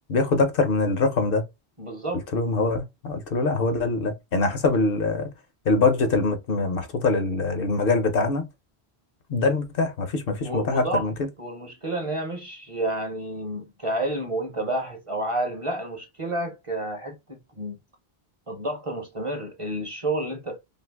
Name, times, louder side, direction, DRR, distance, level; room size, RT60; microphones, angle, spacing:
voice 1, 0.1-1.4 2.3-5.3 5.7-8.5 9.3-11.1, left 3 dB, 65° left, 0.8 m, -23 dB
voice 2, 1.8-2.2 10.4-11.1 11.4-17.8 18.5-20.6, right 1 dB, 35° right, 0.6 m, -30 dB
2.7 x 2.6 x 3.3 m
omnidirectional pair, 1.1 m